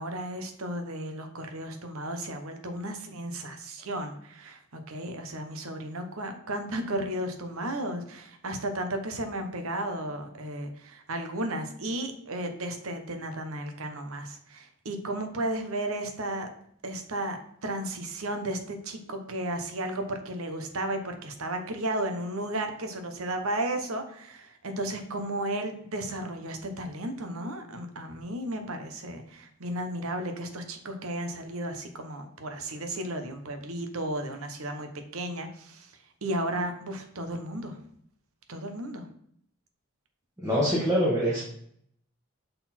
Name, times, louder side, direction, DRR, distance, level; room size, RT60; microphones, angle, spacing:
voice 1, 0.0-16.5 16.8-35.9 36.2-37.8 38.5-39.1, right 1 dB, 70° right, 6 dB, 1.0 m, -34 dB
voice 2, 40.4-41.4, equal, 15° right, -7 dB, 1.4 m, -24 dB
6.6 x 4.0 x 4.3 m, 0.67 s
head